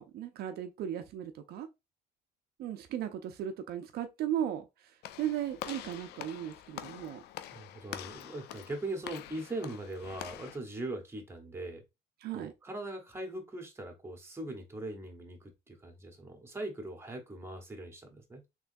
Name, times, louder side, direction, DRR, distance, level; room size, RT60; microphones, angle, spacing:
voice 1, 0.0-1.7 2.6-4.7 5.2-7.2 12.2-12.5, right 10 dB, 70° right, 0.5 m, -36 dB
Walk footsteps / Slam, 5.0-10.6, left 12 dB, 75° left, 0.4 m, -45 dB
voice 2, 7.5-11.8 12.3-18.4, right 2 dB, 15° right, 1.0 m, -41 dB
3.5 x 3.0 x 2.5 m
cardioid pair, 110°, 17 cm